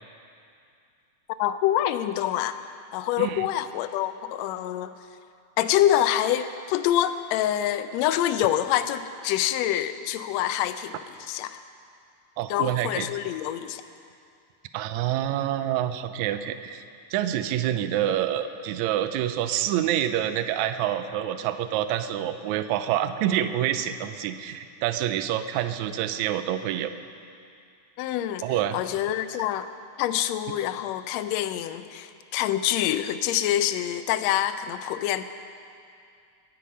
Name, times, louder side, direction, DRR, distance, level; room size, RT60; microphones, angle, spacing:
voice 1, 1.4-2.6 2.9-4.9 5.6-11.0 11.3-11.6 12.5-13.8 28.0-28.4 28.7-29.7 30.0-35.2, left 12 dB, 80° left, 11 dB, 1.6 m, -26 dB
voice 2, 12.4-13.1 14.7-16.8 17.1-26.9 28.4-28.8, right 11 dB, 80° right, 10 dB, 1.9 m, -27 dB
21.0 x 8.7 x 5.5 m, 2.4 s
omnidirectional pair, 3.5 m